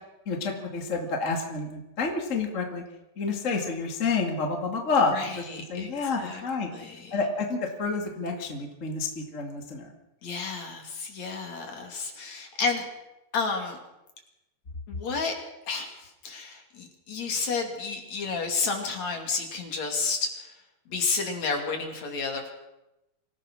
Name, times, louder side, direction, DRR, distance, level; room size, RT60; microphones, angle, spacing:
voice 1, 0.3-2.8 3.2-5.4 5.7-6.7 7.1-9.9, left 4 dB, 25° left, 2 dB, 2.1 m, -29 dB
voice 2, 5.1-5.9 6.2-6.4 6.7-7.1 10.2-12.9 13.3-13.8 14.9-15.3 15.7-20.5 20.9-22.5, left 4 dB, 55° left, 3 dB, 3.7 m, -31 dB
26.0 x 16.0 x 6.3 m, 0.93 s
omnidirectional pair, 4.1 m